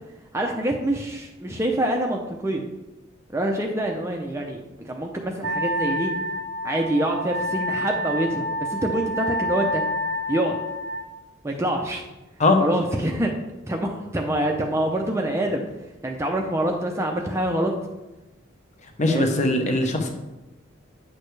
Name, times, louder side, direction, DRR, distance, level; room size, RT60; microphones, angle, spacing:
voice 1, 0.3-2.7 3.3-6.1 6.6-9.8 10.3-10.6 11.4-12.0 12.6-13.3 13.7-15.6 16.0-17.7 19.0-19.3, right 1 dB, 15° right, 1 dB, 0.5 m, -25 dB
Wind instrument woodwind instrument, 5.4-11.1, equal, 60° right, 0.7 m, -28 dB
voice 2, 19.0-20.1, left 2 dB, 35° left, 4 dB, 0.8 m, -20 dB
9.2 x 6.4 x 3.3 m, 1.0 s
head